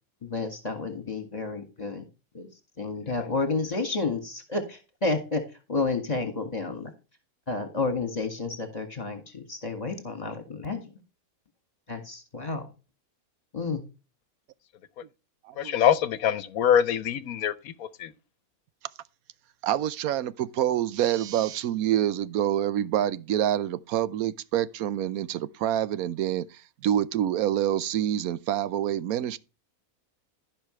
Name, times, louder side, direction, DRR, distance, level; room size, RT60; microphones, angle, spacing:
voice 1, 0.2-2.0 2.3-2.5 2.8-5.4 5.7-6.9 7.5-10.8 11.9-12.6 13.5-13.8, left 3 dB, 30° left, 2.1 m, -30 dB
voice 2, 15.6-18.1, left 9 dB, 80° left, 1.2 m, -25 dB
voice 3, 19.6-29.4, right 11 dB, 90° right, 1.1 m, -27 dB
15.0 x 5.7 x 3.2 m
omnidirectional pair, 1.5 m